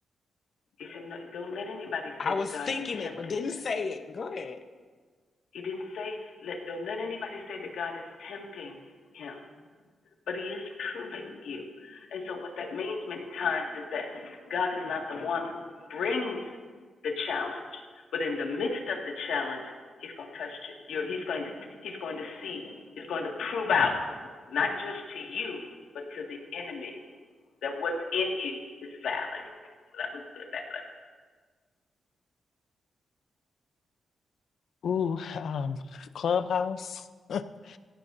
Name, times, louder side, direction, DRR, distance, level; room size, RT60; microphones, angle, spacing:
voice 1, 0.8-2.7 2.9-3.4 5.5-8.8 9.1-9.4 10.3-16.6 17.0-19.7 20.0-27.1 27.6-30.8, left 4 dB, 90° left, 1 dB, 2.0 m, -34 dB
voice 2, 2.2-4.6, left 4 dB, 45° left, 7 dB, 0.9 m, -32 dB
voice 3, 34.8-37.8, left 7 dB, 65° left, 11 dB, 0.6 m, -31 dB
18.5 x 17.0 x 2.7 m, 1.5 s
wide cardioid pair, 145°, 0 cm